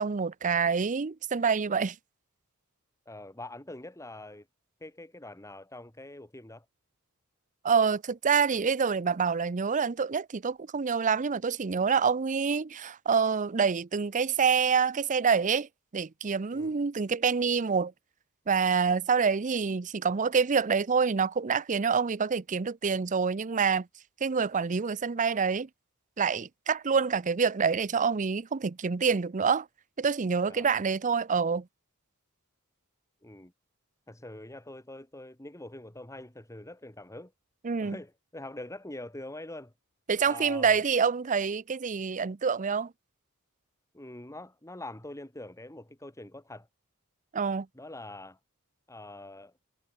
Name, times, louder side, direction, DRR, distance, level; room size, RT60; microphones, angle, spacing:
voice 1, 0.0-2.0 7.6-17.9 18.5-23.9 24.2-25.7 26.2-29.7 30.0-31.7 37.6-38.0 40.1-42.9 47.3-47.7, right 5 dB, 35° right, 0.6 m, -27 dB
voice 2, 3.1-4.4 4.8-6.6 16.5-16.8 30.5-30.7 33.2-33.5 34.1-37.3 37.8-39.7 40.2-40.7 43.9-46.7 47.7-48.4 48.9-49.5, left 1 dB, 15° left, 2.4 m, -44 dB
head